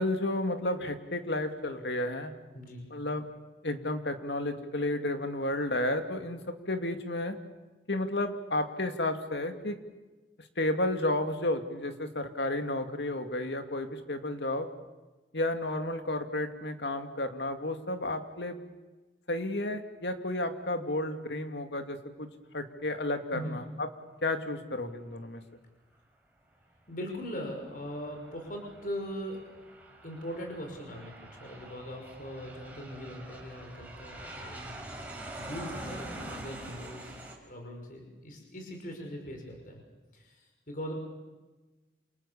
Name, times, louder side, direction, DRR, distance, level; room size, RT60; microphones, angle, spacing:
voice 1, 0.0-2.3 2.9-3.2 3.6-6.4 6.7-7.4 7.9-9.8 10.6-14.7 15.3-18.6 19.3-22.3 22.5-23.9 24.2-25.4, left 1 dB, 80° left, 6 dB, 2.6 m, -32 dB
voice 2, 26.9-29.4 30.0-34.7 35.4-37.2 37.5-39.8 40.1-40.3 40.7-40.9, equal, 50° left, 2 dB, 5.9 m, -40 dB
Aircraft, 27.1-37.4, right 1 dB, 10° right, 4.9 m, -45 dB
28.5 x 28.0 x 7.3 m, 1.2 s
head